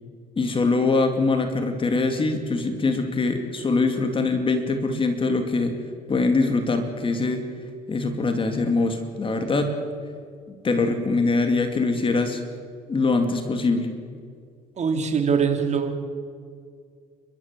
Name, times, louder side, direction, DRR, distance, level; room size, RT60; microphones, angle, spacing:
voice 1, 0.4-5.7 6.1-7.4 7.9-9.8 10.6-12.4 12.9-13.9, left 3 dB, 30° left, 6 dB, 2.6 m, -23 dB
voice 2, 14.8-16.0, right 6 dB, 40° right, 5 dB, 3.0 m, -23 dB
30.0 x 13.0 x 7.6 m, 2.2 s
cardioid pair, 110°, 17 cm